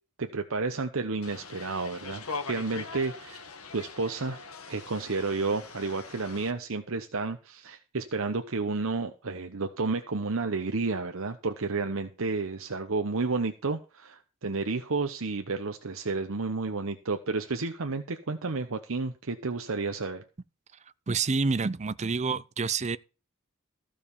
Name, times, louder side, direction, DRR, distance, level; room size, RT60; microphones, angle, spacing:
voice 1, 0.2-3.4 3.7-4.4 4.7-20.2, right 3 dB, 65° right, 0.9 m, -31 dB
sound 1, 1.2-6.5, left 4 dB, 80° left, 1.8 m, -41 dB
voice 2, 21.1-23.0, right 4 dB, 30° right, 0.5 m, -28 dB
14.5 x 5.1 x 7.0 m
head